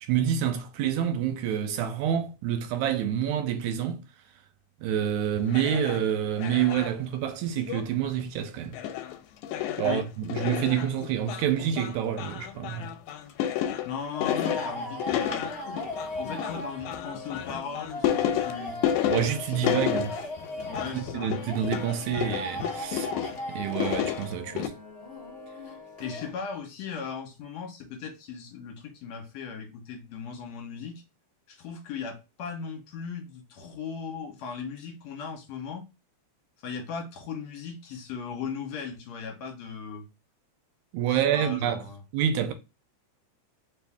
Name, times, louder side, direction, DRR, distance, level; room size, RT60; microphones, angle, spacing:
voice 1, 0.0-4.0 4.8-8.8 9.8-12.9 19.1-20.1 21.1-23.1 23.5-24.7 40.9-41.8 42.1-42.5, right 9 dB, 85° right, 2.0 m, -27 dB
sound 1, 5.5-6.0 6.4-7.0 7.6-7.9 8.2-8.3 8.7-9.2 9.4-23.4 23.7-24.7, left 11 dB, 90° left, 2.0 m, -31 dB
voice 2, 13.9-15.5 16.1-18.8 19.5-19.9 20.7-21.3 26.0-31.0 31.5-35.9 36.6-40.1 41.1-42.0, left 6 dB, 70° left, 2.1 m, -37 dB
sound 2, 14.1-26.3, left 1 dB, 35° left, 0.9 m, -38 dB
4.6 x 2.7 x 3.4 m
omnidirectional pair, 3.4 m